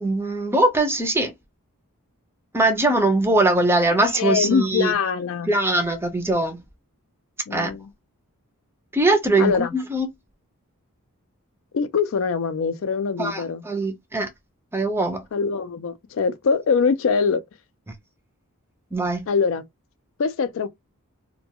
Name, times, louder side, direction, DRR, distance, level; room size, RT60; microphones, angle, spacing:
voice 1, 0.0-1.3 2.5-4.9 5.5-6.6 7.5-7.7 8.9-10.1 13.2-14.3 14.7-15.2 18.9-19.3, right 2 dB, 10° right, 0.5 m, -21 dB
voice 2, 4.0-5.5 7.5-7.9 9.4-9.7 11.7-13.6 15.3-17.4 19.3-19.6 20.2-20.7, left 5 dB, 60° left, 0.4 m, -23 dB
2.2 x 2.2 x 2.8 m
head